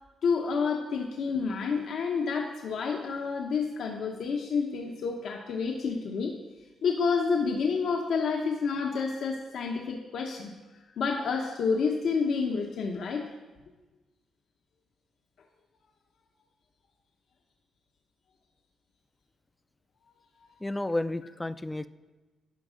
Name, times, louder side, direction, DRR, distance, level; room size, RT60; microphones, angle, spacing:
voice 1, 0.2-6.3 6.8-10.5 11.0-13.2, left 5 dB, 70° left, 1 dB, 0.8 m, -29 dB
voice 2, 20.6-21.9, left 2 dB, 10° left, 14 dB, 0.3 m, -31 dB
11.5 x 5.3 x 5.0 m, 1.2 s
cardioid pair, 115°, 0 cm